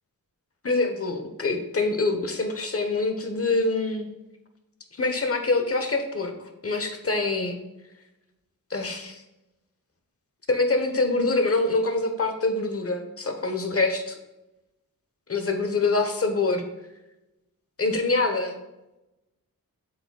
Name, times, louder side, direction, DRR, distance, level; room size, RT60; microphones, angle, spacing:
voice 1, 0.6-4.1 4.9-6.3 6.6-7.6 8.7-9.2 10.5-14.2 15.3-16.6 17.8-18.6, left 3 dB, 40° left, 6 dB, 1.0 m, -25 dB
7.7 x 7.2 x 2.3 m, 0.97 s
wide cardioid pair, 105°, 35 cm